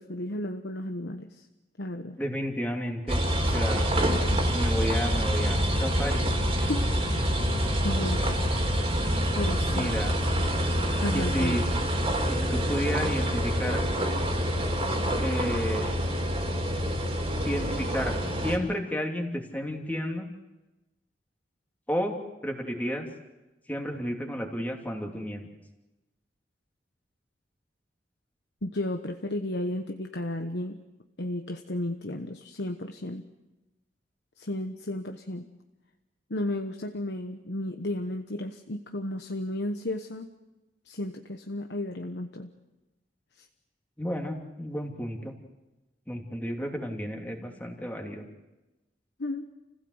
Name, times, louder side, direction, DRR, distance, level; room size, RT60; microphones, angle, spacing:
voice 1, 0.0-1.4 1.8-2.2 4.1-4.4 6.6-7.3 7.8-8.4 9.3-9.9 11.0-11.6 28.6-30.8 31.2-33.2 34.4-35.4 36.3-40.3 40.8-42.5 43.4-43.5 49.2-49.5, left 1 dB, 70° left, 5 dB, 1.2 m, -33 dB
voice 2, 2.2-3.2 3.5-3.9 4.5-6.2 9.7-10.2 11.1-11.7 12.2-13.8 15.2-15.9 17.4-18.2 18.4-20.3 21.9-22.2 22.4-23.1 23.7-25.5 44.0-45.3 46.1-48.3, equal, 10° left, 2 dB, 2.8 m, -32 dB
sound 1, 3.1-18.6, equal, 35° right, 3.5 m, -26 dB
29.5 x 16.0 x 8.0 m, 1.0 s
head